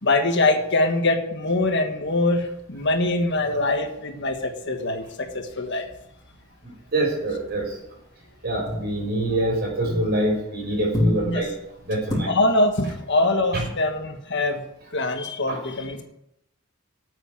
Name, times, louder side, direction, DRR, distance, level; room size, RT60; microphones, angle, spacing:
voice 1, 0.0-5.8 11.2-11.4 12.2-14.6 14.9-16.0, left 2 dB, 60° left, 5 dB, 1.6 m, -23 dB
sound 1, 2.0-5.7 6.0-6.4 6.6-10.5 10.8-12.1, left 1 dB, 20° left, 3.7 m, -32 dB
voice 2, 6.6-7.8 8.4-11.5 11.8-12.3 13.5-13.6 15.5-15.6, right 1 dB, 50° right, 0 dB, 5.3 m, -25 dB
9.1 x 8.2 x 9.2 m, 0.83 s
head